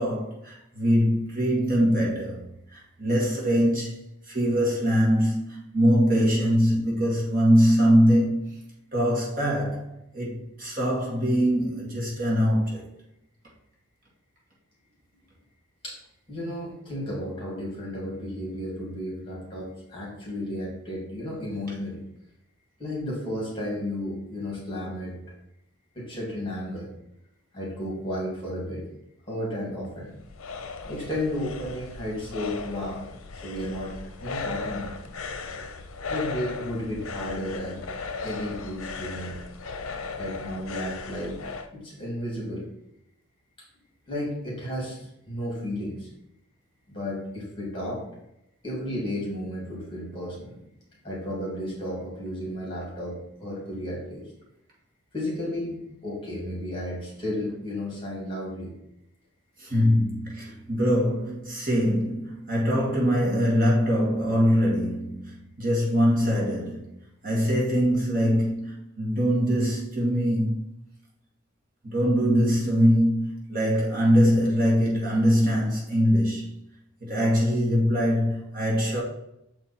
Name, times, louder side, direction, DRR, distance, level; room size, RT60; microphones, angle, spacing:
voice 1, 0.0-3.9 4.3-8.6 8.9-9.9 10.1-12.8 59.6-66.9 67.2-70.6 71.8-76.5 77.0-79.0, equal, 40° right, 2.0 m, -23 dB
voice 2, 16.3-22.0 22.8-25.2 25.9-26.9 27.5-28.9 29.3-30.2 30.9-33.1 33.4-34.9 35.5-35.6 36.1-37.9 38.2-39.4 40.2-41.4 41.7-42.7 44.1-46.1 46.9-48.0 48.6-50.5 51.0-54.3 55.1-58.7, left 1 dB, 25° left, 2.6 m, -33 dB
sound 1, 29.8-41.7, left 4 dB, 75° left, 0.6 m, -37 dB
7.0 x 4.4 x 4.3 m
head